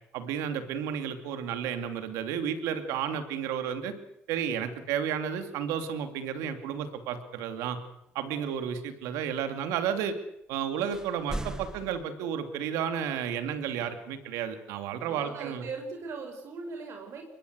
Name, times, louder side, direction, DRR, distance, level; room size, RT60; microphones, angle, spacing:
voice 1, 0.1-3.9 4.3-7.8 8.1-10.2 10.5-15.6, right 8 dB, 90° right, 9 dB, 2.7 m, -32 dB
sound 1, 10.9-12.1, right 1 dB, 15° right, 1.4 m, -37 dB
voice 2, 15.0-17.2, right 4 dB, 70° right, 4 dB, 5.2 m, -39 dB
23.5 x 21.0 x 8.2 m, 0.79 s
supercardioid pair, 70°, 5 cm